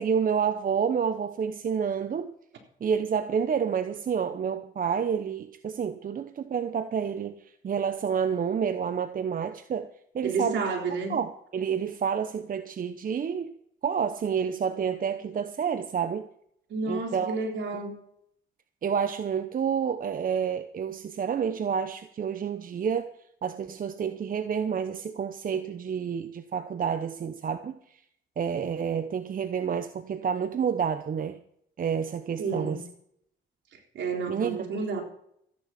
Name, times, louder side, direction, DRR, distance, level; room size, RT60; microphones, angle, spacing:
voice 1, 0.0-2.3 2.8-9.9 10.1-10.6 11.1-13.5 13.8-16.3 16.9-17.4 17.7-17.8 18.8-23.1 23.4-28.0 28.4-31.4 31.8-32.8 34.3-34.7, right 7 dB, 45° right, 11 dB, 0.9 m, -29 dB
voice 2, 10.2-11.2 16.7-17.9 32.4-32.9 33.9-35.0, right 4 dB, 70° right, 2 dB, 3.8 m, -30 dB
14.5 x 10.5 x 5.9 m, 0.70 s
cardioid pair, 90°, 20 cm